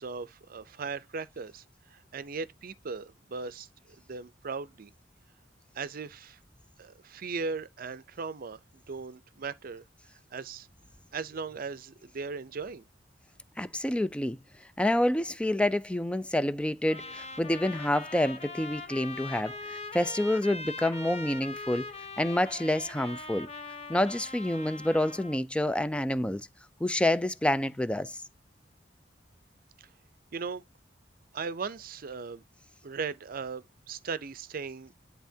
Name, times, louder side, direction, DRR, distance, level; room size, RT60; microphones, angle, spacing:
voice 1, 0.0-1.6 1.9-3.7 4.0-4.9 5.8-6.4 6.8-8.6 8.9-9.8 10.3-10.7 11.1-12.8 29.8-29.9 30.3-30.6 31.3-32.4 32.8-34.9, right 5 dB, 50° right, 0.5 m, -38 dB
voice 2, 13.6-14.4 14.8-21.8 22.2-23.5 23.9-26.5 26.8-28.2, left 1 dB, 5° left, 0.4 m, -28 dB
Trumpet, 16.9-25.4, left 3 dB, 35° left, 0.9 m, -42 dB
10.5 x 3.5 x 2.7 m
head